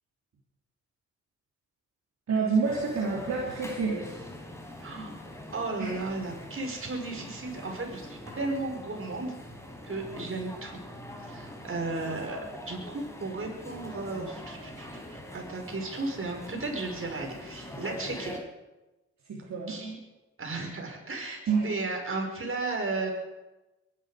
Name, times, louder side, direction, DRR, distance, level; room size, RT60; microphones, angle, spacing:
voice 1, 2.3-4.2 5.8-5.9 19.3-19.8 21.5-21.7, right 5 dB, 65° right, -3 dB, 3.4 m, -28 dB
sound 1, 2.6-18.4, left 1 dB, 10° left, 4.5 m, -43 dB
voice 2, 4.8-5.1 5.5-9.4 9.8-10.8 11.2-18.4 19.7-20.0 20.4-23.1, right 3 dB, 45° right, 1 dB, 5.6 m, -34 dB
22.5 x 11.5 x 5.2 m, 1.1 s
supercardioid pair, 45°, 30 cm